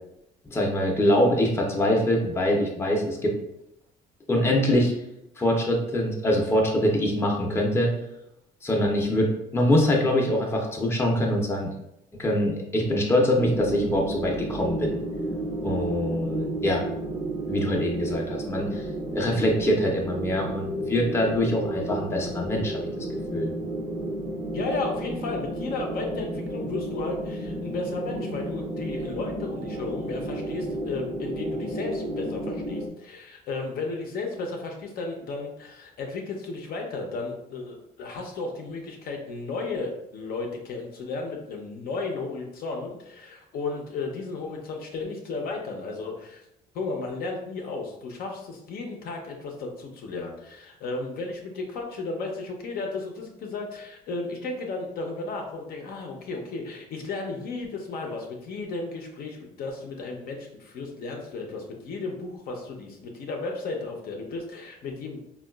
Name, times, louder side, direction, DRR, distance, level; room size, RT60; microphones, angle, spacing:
voice 1, 0.5-3.4 4.3-4.9 5.4-7.9 8.6-11.7 12.2-15.0 15.6-16.8 17.5-18.8 19.1-23.1 23.3-23.5, left 1 dB, 15° left, -1 dB, 0.6 m, -24 dB
sound 1, 13.4-32.9, right 1 dB, 35° right, 0.4 m, -32 dB
voice 2, 24.5-46.4 46.7-65.2, left 3 dB, 60° left, 1 dB, 0.6 m, -34 dB
3.7 x 2.3 x 2.2 m, 0.83 s
cardioid pair, 110°, 17 cm